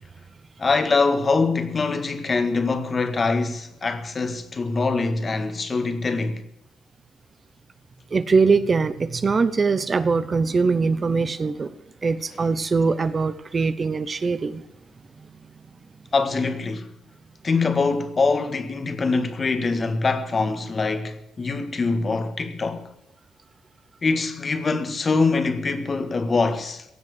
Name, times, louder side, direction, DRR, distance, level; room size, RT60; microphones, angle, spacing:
voice 1, 0.6-6.4 16.1-16.9 17.4-22.9 24.0-26.8, left 4 dB, 35° left, 1.6 m, -23 dB
voice 2, 8.1-11.7 12.0-14.6, right 4 dB, 35° right, 0.8 m, -22 dB
16.5 x 7.5 x 9.6 m
cardioid pair, 90°, 0 cm